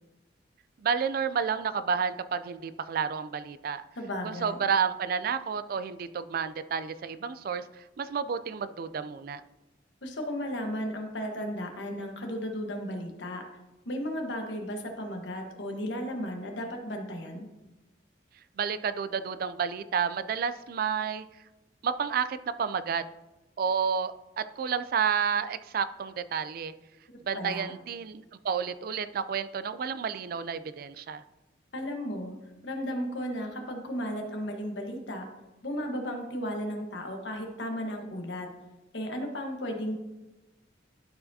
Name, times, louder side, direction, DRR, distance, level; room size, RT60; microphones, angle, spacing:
voice 1, 0.8-3.8 4.2-9.4 18.6-21.3 21.8-23.0 23.6-26.7 27.2-31.2, right 6 dB, 50° right, 13 dB, 0.3 m, -30 dB
voice 2, 4.0-4.6 10.0-13.4 13.8-17.5 27.3-27.8 31.7-32.3 32.6-35.3 35.6-38.5 38.9-39.9, equal, 75° left, 3 dB, 1.3 m, -34 dB
12.0 x 4.6 x 2.7 m, 1.0 s
head